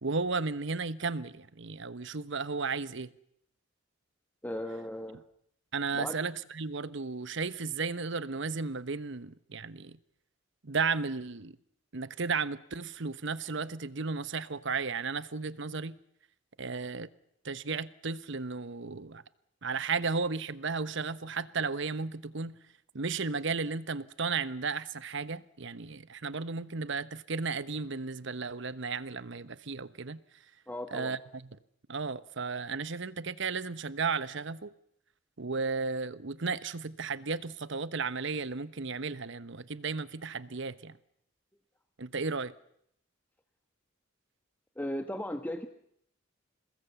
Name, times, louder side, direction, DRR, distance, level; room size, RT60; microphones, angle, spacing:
voice 1, 0.0-3.1 5.7-10.0 10.6-11.5 11.9-16.0 16.6-17.1 17.4-19.2 19.6-22.5 22.9-30.2 30.9-31.6 31.9-34.7 35.4-41.0 42.0-42.5, right 4 dB, 65° right, 1.1 m, -34 dB
voice 2, 4.4-5.2 5.9-6.2 30.7-31.2 44.8-45.7, left 1 dB, 10° left, 1.2 m, -36 dB
28.5 x 20.0 x 8.2 m
head